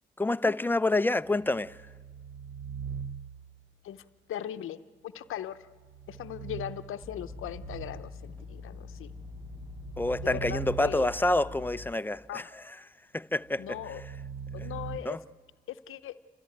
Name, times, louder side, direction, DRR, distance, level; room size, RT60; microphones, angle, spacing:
voice 1, 0.2-1.8 10.0-12.8 13.1-13.9 15.0-15.2, left 2 dB, 10° left, 0.7 m, -28 dB
sound 1, 1.3-3.6 5.7-8.3 9.0-11.4 13.5-15.0, right 7 dB, 65° right, 0.8 m, -42 dB
voice 2, 3.8-5.6 6.1-9.1 10.2-11.1 12.3-12.5 13.6-14.0 14.5-15.2 15.7-16.1, left 11 dB, 85° left, 0.8 m, -39 dB
sound 2, 7.0-11.9, left 4 dB, 35° right, 5.0 m, -45 dB
30.0 x 14.0 x 8.9 m
supercardioid pair, 50°, 21 cm